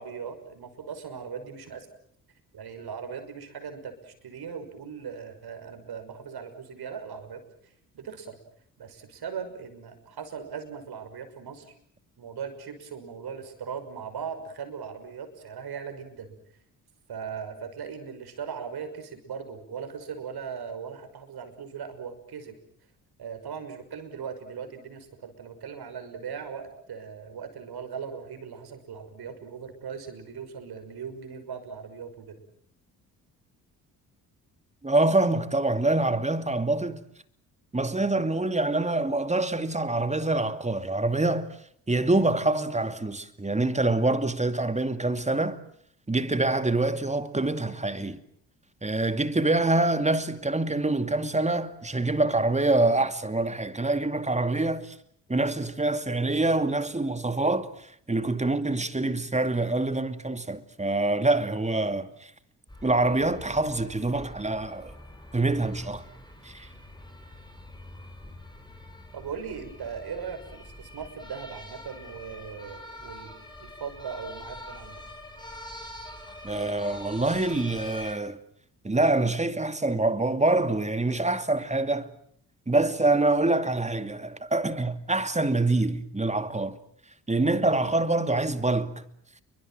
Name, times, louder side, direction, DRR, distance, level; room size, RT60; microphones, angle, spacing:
voice 1, 0.0-1.9 2.5-8.4 8.8-11.7 12.2-16.4 17.1-22.6 23.2-32.3 69.1-75.0, right 6 dB, 55° right, 6.0 m, -39 dB
voice 2, 34.8-37.0 37.7-41.5 41.9-45.6 46.1-48.2 48.8-55.0 55.3-62.3 62.8-65.0 65.3-66.0 66.4-66.7 76.4-78.4 78.8-82.1 82.7-86.8 87.3-89.0, right 2 dB, 15° right, 2.6 m, -25 dB
sound 1, 62.7-78.1, left 1 dB, 10° left, 6.1 m, -45 dB
29.5 x 23.5 x 7.7 m
hypercardioid pair, 45°, 46 cm